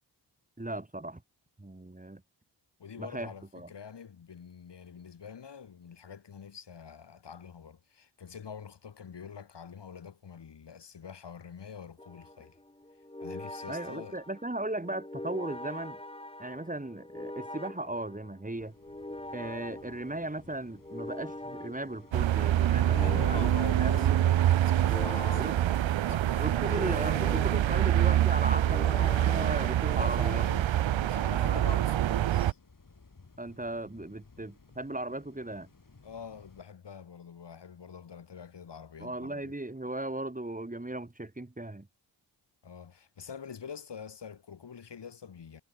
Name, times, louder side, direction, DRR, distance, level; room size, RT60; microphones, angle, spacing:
voice 1, 0.6-1.2 1.6-2.2 3.0-3.7 13.7-16.0 16.4-18.7 19.3-24.3 25.4-25.6 26.1-30.4 31.4-31.6 33.4-35.7 39.0-41.9, right 2 dB, 15° right, 2.3 m, -37 dB
voice 2, 2.8-12.6 13.2-14.2 22.8-26.7 29.9-32.6 36.0-39.5 42.6-45.6, left 7 dB, 65° left, 1.8 m, -45 dB
sound 1, 12.0-30.4, left 1 dB, 10° left, 2.3 m, -44 dB
sound 2, 18.6-36.6, left 4 dB, 45° left, 5.4 m, -59 dB
sound 3, 22.1-32.5, right 12 dB, 75° right, 0.7 m, -26 dB
cardioid pair, 40°, 46 cm